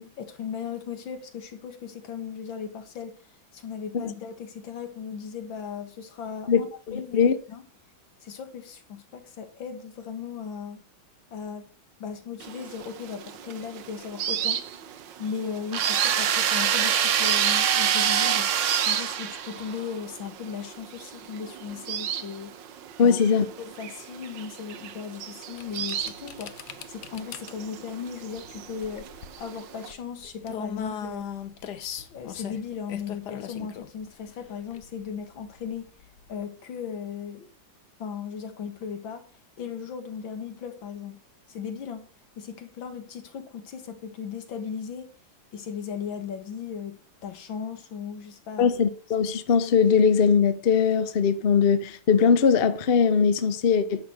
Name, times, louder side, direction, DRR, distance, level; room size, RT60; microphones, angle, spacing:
voice 1, 0.0-3.2 3.5-7.7 8.2-10.8 11.3-11.7 12.0-18.5 18.9-22.6 23.0-23.2 23.6-31.3 32.1-35.9 36.3-37.5 38.0-39.3 39.6-41.2 41.5-42.1 42.4-45.1 45.5-48.7, left 7 dB, 85° left, 2.3 m, -37 dB
voice 2, 6.9-7.3 23.0-23.4 48.6-54.0, left 6 dB, 45° left, 0.8 m, -21 dB
sound 1, 12.4-29.9, right 9 dB, 75° right, 1.5 m, -36 dB
sound 2, 15.7-19.8, right 9 dB, 55° right, 0.8 m, -24 dB
sound 3, 25.5-36.3, left 8 dB, 65° left, 1.4 m, -40 dB
10.5 x 6.6 x 5.9 m
omnidirectional pair, 2.1 m